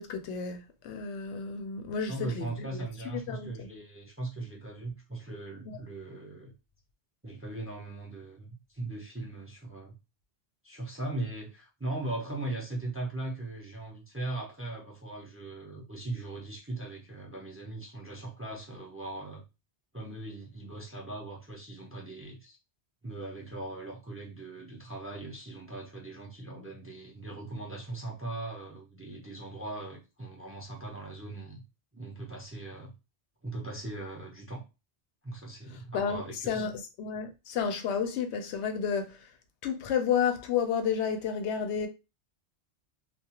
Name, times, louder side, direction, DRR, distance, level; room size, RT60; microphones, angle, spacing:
voice 1, 0.0-3.7 5.6-5.8 35.9-39.3 39.6-41.9, left 7 dB, 90° left, 0.9 m, -31 dB
voice 2, 2.1-6.5 7.2-10.0 10.6-19.4 19.9-22.6 23.0-31.6 31.9-32.9 33.4-34.6 35.2-36.6, right 2 dB, 15° right, 0.4 m, -39 dB
2.3 x 2.3 x 2.8 m
omnidirectional pair, 1.1 m